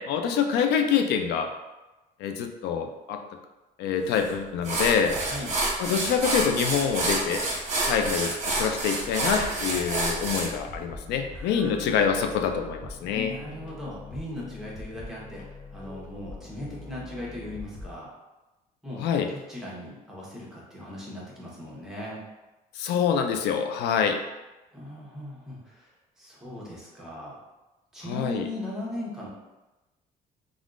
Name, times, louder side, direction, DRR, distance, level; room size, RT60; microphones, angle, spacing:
voice 1, 0.0-1.5 2.2-3.2 3.8-5.1 5.8-7.4 7.9-13.3 19.0-19.3 22.8-24.2 28.1-28.5, left 7 dB, 80° left, 5 dB, 0.4 m, -26 dB
sound 1, 4.1-4.3 4.6-10.5, right 2 dB, 45° right, 0.9 m, -28 dB
sound 2, 9.0-17.9, left 2 dB, 50° left, 0.7 m, -43 dB
voice 2, 11.3-12.1 13.1-15.4 15.7-18.1 18.8-22.2 24.7-25.9 26.2-27.4 27.9-29.3, left 1 dB, 5° right, -6 dB, 1.0 m, -38 dB
3.4 x 2.4 x 2.5 m, 1.1 s
cardioid pair, 110°, 17 cm